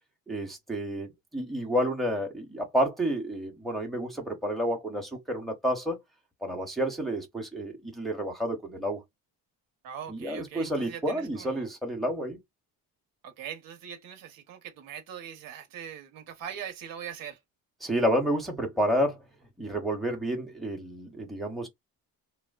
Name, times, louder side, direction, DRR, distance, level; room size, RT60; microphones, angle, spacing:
voice 1, 0.3-6.0 6.4-9.0 10.1-12.4 17.8-19.2 19.6-21.7, equal, ahead, 0.7 m, -30 dB
voice 2, 9.8-11.7 13.2-17.4, right 8 dB, 65° right, 1.0 m, -41 dB
3.0 x 2.1 x 2.3 m
cardioid pair, 130°, 36 cm